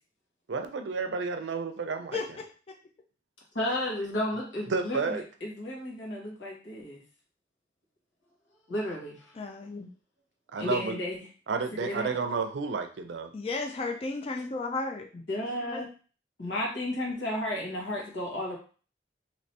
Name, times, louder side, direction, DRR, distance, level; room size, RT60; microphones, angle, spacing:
voice 1, 0.5-2.2 4.7-5.2 10.5-11.0 11.5-13.3, right 4 dB, 75° right, 7 dB, 0.5 m, -31 dB
voice 2, 3.5-7.0 8.7-9.3 10.6-11.2 11.8-12.1 15.3-15.9 16.4-18.6, left 1 dB, 85° left, -3 dB, 1.4 m, -33 dB
voice 3, 9.4-9.9 13.3-15.1 15.7-15.8, left 3 dB, 35° left, 3 dB, 0.3 m, -33 dB
3.2 x 2.9 x 2.8 m, 0.38 s
head